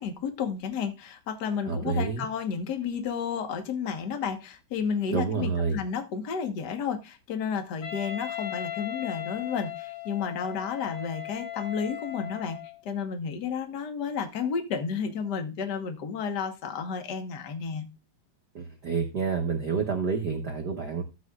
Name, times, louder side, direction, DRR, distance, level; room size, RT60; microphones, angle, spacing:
voice 1, 0.0-12.6 12.8-17.9, left 6 dB, 50° left, 7 dB, 1.3 m, -32 dB
voice 2, 1.7-2.2 5.1-5.8 18.5-21.0, right 5 dB, 70° right, 3 dB, 1.0 m, -28 dB
Wind instrument woodwind instrument, 7.8-12.8, left 11 dB, 70° left, 3.5 m, -37 dB
13.5 x 8.4 x 2.4 m, 0.27 s
omnidirectional pair, 3.4 m